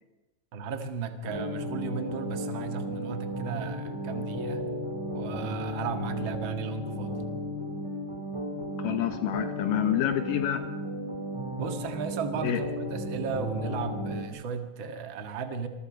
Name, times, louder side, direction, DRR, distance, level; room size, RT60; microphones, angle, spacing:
voice 1, 0.5-4.7 5.1-7.2 11.6-15.7, right 6 dB, 40° right, 7 dB, 2.1 m, -35 dB
sound 1, 1.2-14.2, equal, 10° right, 1.9 m, -34 dB
voice 2, 8.8-10.7 12.4-12.6, left 12 dB, 75° left, 9 dB, 2.6 m, -28 dB
28.0 x 21.5 x 5.3 m, 1.1 s
omnidirectional pair, 4.0 m